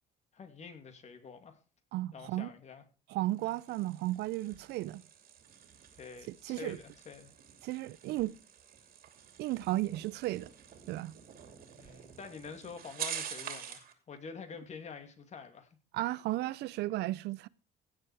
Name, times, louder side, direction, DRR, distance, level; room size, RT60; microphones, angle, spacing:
voice 1, 0.3-1.6 2.1-2.8 6.0-7.3 11.8-15.8, left 5 dB, 40° left, 2.7 m, -47 dB
voice 2, 1.9-2.5 3.1-5.0 6.3-6.8 7.6-8.4 9.4-10.5 10.9-11.1 15.9-17.5, right 16 dB, 80° right, 0.6 m, -34 dB
sound 1, 3.2-13.9, right 8 dB, 60° right, 2.8 m, -47 dB
16.5 x 7.4 x 4.9 m
cardioid pair, 110°, 17 cm